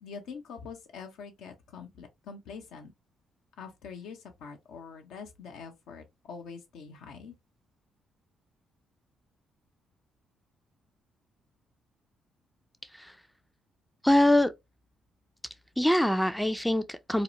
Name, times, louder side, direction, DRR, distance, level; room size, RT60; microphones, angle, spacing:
voice 1, 0.0-2.9 3.6-7.3, left 5 dB, 70° left, 0.6 m, -44 dB
voice 2, 14.0-14.5 15.8-17.2, left 1 dB, 5° left, 0.3 m, -24 dB
2.8 x 2.0 x 2.5 m
hypercardioid pair, 45°, 0 cm